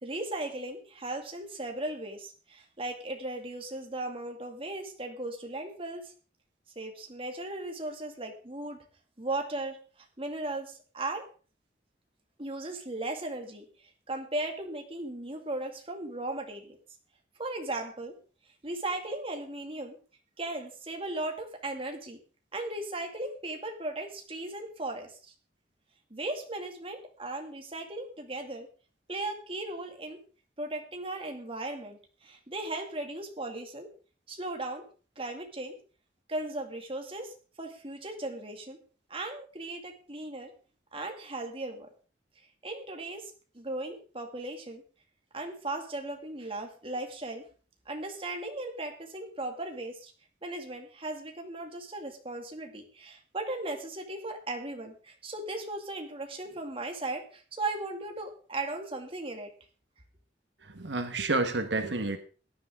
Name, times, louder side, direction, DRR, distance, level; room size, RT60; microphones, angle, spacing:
voice 1, 0.0-6.1 6.8-8.8 9.2-9.8 10.2-11.3 12.4-13.6 14.1-16.8 17.4-18.2 18.6-20.0 20.4-22.2 22.5-25.3 26.1-28.7 29.1-30.2 30.6-33.9 34.3-34.9 35.2-35.7 36.3-38.8 39.1-40.5 40.9-41.9 42.6-44.8 45.3-47.4 47.9-50.1 50.4-59.5, right 2 dB, 30° right, 3 dB, 2.4 m, -37 dB
voice 2, 60.6-62.2, right 3 dB, 85° right, 7 dB, 1.4 m, -30 dB
17.0 x 10.5 x 3.7 m, 0.38 s
head